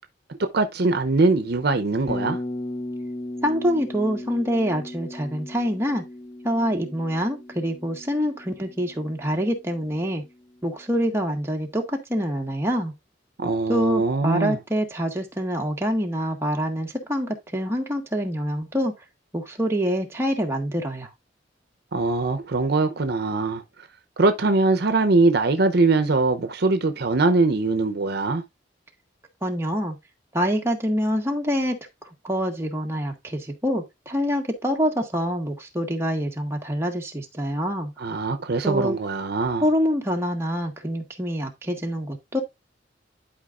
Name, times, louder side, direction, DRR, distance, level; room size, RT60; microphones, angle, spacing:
voice 1, 0.4-2.4 13.4-14.6 21.9-23.6 24.2-28.4 38.0-39.6, right 3 dB, 60° right, 0.7 m, -22 dB
Bass guitar, 2.1-10.2, left 1 dB, 25° left, 0.8 m, -36 dB
voice 2, 3.4-6.0 6.4-10.2 10.6-12.9 13.7-18.9 19.3-21.1 29.4-30.0 30.3-31.7 32.2-37.9 38.6-39.0 39.6-42.4, equal, 15° right, 1.6 m, -25 dB
11.5 x 4.9 x 2.5 m
head